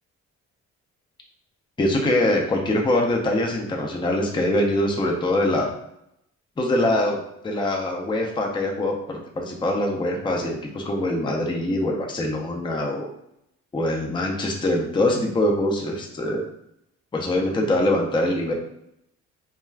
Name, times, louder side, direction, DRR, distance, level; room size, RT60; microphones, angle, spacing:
voice 1, 1.8-5.7 6.6-13.1 13.7-16.4 17.1-18.5, left 1 dB, 15° left, 1 dB, 0.5 m, -23 dB
2.3 x 2.3 x 3.2 m, 0.77 s
cardioid pair, 90°, 30 cm